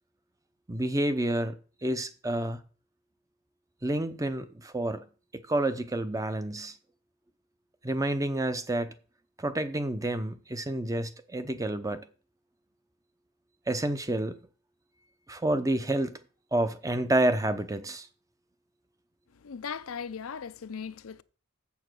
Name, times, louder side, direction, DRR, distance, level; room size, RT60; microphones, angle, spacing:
voice 1, 0.7-1.6 1.8-2.6 3.8-5.0 5.5-6.7 7.8-8.9 9.4-12.1 13.7-14.4 15.3-16.2 16.5-18.1, right 1 dB, 15° right, 0.6 m, -29 dB
voice 2, 19.3-21.2, left 6 dB, 80° left, 0.6 m, -38 dB
7.5 x 7.1 x 6.3 m
head